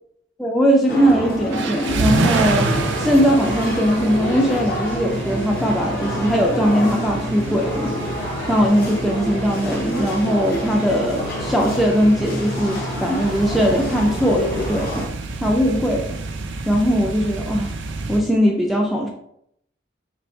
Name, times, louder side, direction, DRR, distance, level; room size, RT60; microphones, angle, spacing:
voice 1, 0.4-2.7 3.0-7.9 8.5-15.1 15.4-16.2 16.7-17.7 18.1-19.1, equal, ahead, -1 dB, 0.3 m, -19 dB
sound 1, 0.9-15.1, left 1 dB, 50° left, 0.6 m, -28 dB
sound 2, 1.5-18.2, right 3 dB, 75° right, 0.4 m, -28 dB
3.1 x 2.6 x 4.3 m, 0.74 s
head